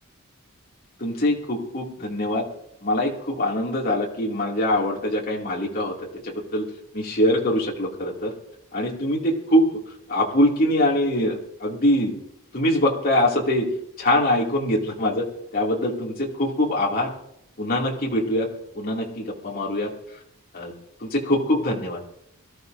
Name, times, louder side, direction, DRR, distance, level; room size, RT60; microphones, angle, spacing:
voice 1, 1.0-2.5 2.8-6.7 6.9-8.3 8.7-9.7 10.1-12.1 12.5-13.7 14.0-15.2 15.5-17.1 17.6-18.5 18.7-19.9 20.5-20.7 21.0-22.0, left 1 dB, 45° left, -3 dB, 2.5 m, -23 dB
24.0 x 13.0 x 2.7 m, 0.78 s
head